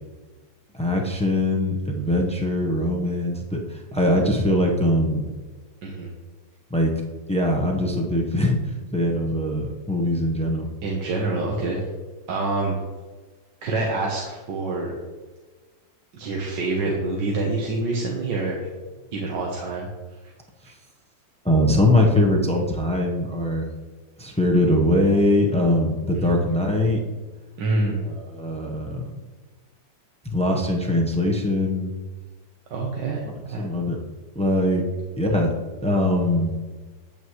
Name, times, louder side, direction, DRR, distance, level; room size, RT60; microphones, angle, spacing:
voice 1, 0.7-5.3 6.7-6.9 7.3-10.7 21.4-23.7 24.2-27.0 28.1-29.1 30.2-31.9 33.2-34.0 34.3-34.8 35.2-35.5 35.8-36.5, left 1 dB, 5° left, 0 dB, 0.4 m, -22 dB
voice 2, 10.8-11.8 12.3-12.8 13.6-14.9 16.1-18.7 19.1-19.9 26.1-26.5 27.6-28.0 32.7-33.7, right 3 dB, 70° right, -2 dB, 1.7 m, -26 dB
9.4 x 8.7 x 3.1 m, 1.3 s
omnidirectional pair, 2.0 m